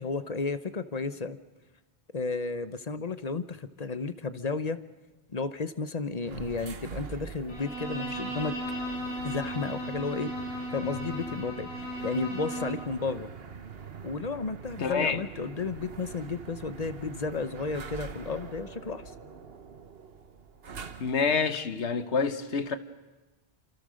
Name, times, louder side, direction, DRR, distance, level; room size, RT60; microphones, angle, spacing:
voice 1, 0.0-1.4 2.1-4.8 5.3-8.6 9.2-10.4 10.7-13.3 14.0-19.0, left 4 dB, 40° left, 0.9 m, -33 dB
sound 1, 6.2-21.4, right 6 dB, 60° right, 1.4 m, -44 dB
Bowed string instrument, 7.5-12.9, equal, 70° left, 5.8 m, -36 dB
voice 2, 14.8-15.2 21.0-22.8, left 5 dB, 85° left, 1.5 m, -27 dB
29.0 x 26.0 x 6.4 m
omnidirectional pair, 1.1 m